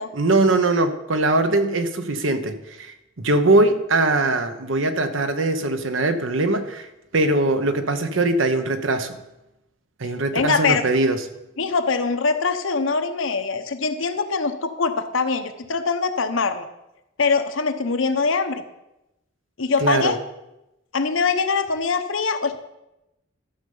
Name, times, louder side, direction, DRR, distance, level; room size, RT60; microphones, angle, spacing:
voice 1, 0.1-6.9 7.1-9.2 10.0-11.2 19.8-20.1, right 2 dB, 75° right, 9 dB, 1.0 m, -21 dB
voice 2, 10.3-10.8 11.6-16.7 17.2-18.6 19.6-20.2 20.9-22.6, left 4 dB, 75° left, 8 dB, 0.9 m, -23 dB
12.5 x 6.7 x 5.5 m, 0.92 s
head